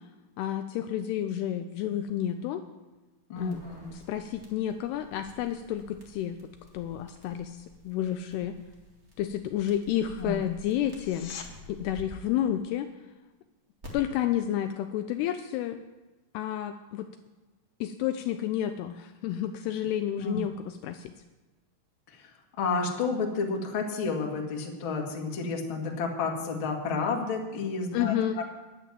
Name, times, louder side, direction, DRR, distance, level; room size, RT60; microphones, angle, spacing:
voice 1, 0.4-2.6 3.4-3.6 3.9-8.5 9.2-11.3 11.7-12.9 13.9-15.8 16.3-17.1 17.8-21.1 27.9-28.4, left 11 dB, 85° left, 8 dB, 2.5 m, -30 dB
voice 2, 3.3-4.0 10.2-10.4 20.2-20.4 22.1-22.3 22.6-28.5, left 4 dB, 45° left, 0 dB, 1.7 m, -31 dB
sound 1, 3.4-12.0 13.8-13.9, left 1 dB, 35° right, 1.1 m, -51 dB
sound 2, 10.9-11.5 22.9-23.0, left 7 dB, 65° left, 2.4 m, -42 dB
10.5 x 10.5 x 7.3 m, 1.1 s
omnidirectional pair, 5.0 m